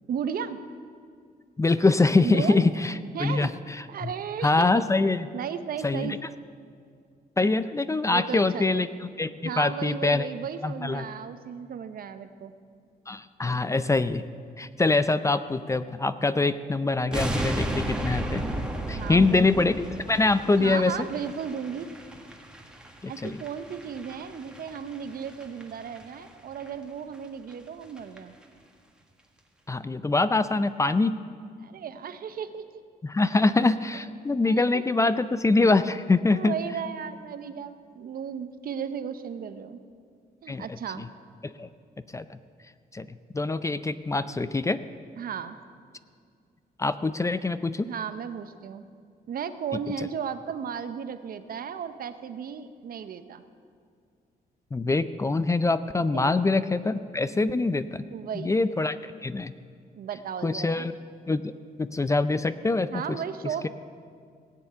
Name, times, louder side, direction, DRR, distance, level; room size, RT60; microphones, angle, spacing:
voice 1, 0.1-0.6 2.2-2.7 3.1-3.5 3.9-4.8 5.3-6.2 8.1-8.9 9.4-12.5 18.9-19.7 20.6-21.9 23.0-28.4 31.6-32.8 34.4-34.8 36.3-39.8 40.4-41.1 45.2-45.6 47.9-48.9 49.3-53.4 56.1-56.4 58.1-58.5 59.9-60.9 62.9-63.7, right 7 dB, 65° right, 11 dB, 0.8 m, -35 dB
voice 2, 1.6-4.1 4.4-5.3 5.8-6.2 7.4-8.9 9.2-10.3 10.6-11.0 13.1-14.3 14.6-18.5 18.9-21.0 23.0-23.4 29.7-31.1 33.0-36.5 40.5-40.8 41.4-41.7 42.1-42.4 42.9-43.1 43.3-44.8 46.8-47.9 54.7-58.0 58.3-59.5 60.4-60.9 61.3-61.5 61.8-63.2, left 3 dB, 20° left, 13 dB, 0.4 m, -24 dB
sound 1, 17.1-26.3 26.5-26.7 27.1-27.2 27.5-27.6 27.8-28.2 28.4-28.5, right 1 dB, 5° right, 1.5 m, -35 dB
17.5 x 7.1 x 8.7 m, 2.2 s
cardioid pair, 110°, 16 cm